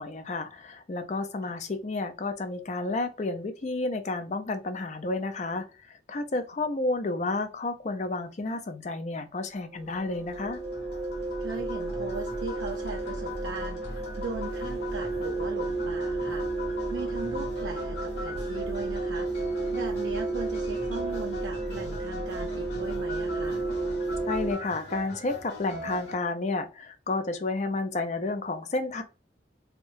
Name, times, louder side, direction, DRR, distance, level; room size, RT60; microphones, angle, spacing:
voice 1, 0.0-10.6 24.3-29.0, left 2 dB, 40° left, 0.5 m, -31 dB
sound 1, 9.7-24.5, right 2 dB, 30° right, 1.0 m, -32 dB
sound 2, 9.9-26.1, left 2 dB, 65° left, 1.5 m, -42 dB
voice 2, 11.4-16.5 16.9-19.3 19.7-23.6, right 4 dB, 80° right, 0.4 m, -38 dB
3.6 x 2.2 x 2.5 m
head